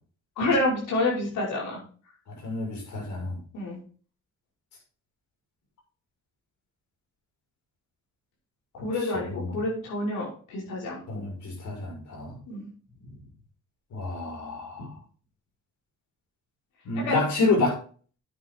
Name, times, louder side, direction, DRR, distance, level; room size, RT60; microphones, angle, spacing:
voice 1, 0.4-1.8 3.5-3.8 8.7-11.2 12.5-12.7 13.0-13.2 14.8-14.9 16.9-17.2, left 2 dB, 85° left, -4 dB, 5.8 m, -28 dB
voice 2, 2.3-3.4 8.8-8.9 9.1-9.5 11.1-12.4 13.9-14.9 16.8-17.8, left 3 dB, 70° left, 0 dB, 5.9 m, -29 dB
9.5 x 9.0 x 3.8 m, 0.41 s
cardioid pair, 90°, 30 cm